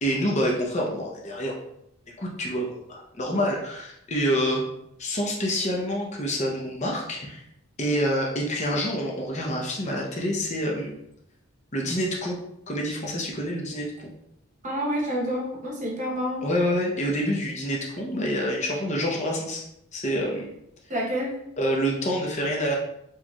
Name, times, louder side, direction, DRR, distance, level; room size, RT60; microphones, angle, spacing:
voice 1, 0.0-1.6 2.2-4.6 5.0-7.4 7.8-10.9 11.7-12.4 12.7-13.9 16.4-19.6 19.9-20.5 21.6-22.8, equal, 30° left, -2 dB, 0.7 m, -27 dB
voice 2, 14.6-16.4 20.9-21.4, equal, 35° right, -2 dB, 0.9 m, -28 dB
4.5 x 3.0 x 2.3 m, 0.77 s
head